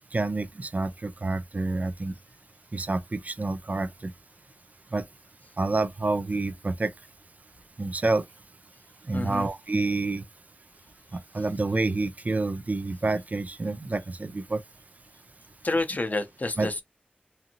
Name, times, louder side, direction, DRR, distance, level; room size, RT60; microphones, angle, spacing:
voice 1, 0.1-2.1 2.7-4.1 4.9-5.0 5.6-6.9 7.8-8.2 9.1-10.2 11.1-14.6 16.6-16.7, right 3 dB, 45° right, 0.3 m, -28 dB
voice 2, 9.1-9.5 15.6-16.8, left 2 dB, 50° left, 0.5 m, -28 dB
2.6 x 2.5 x 2.8 m
wide cardioid pair, 65°, 4 cm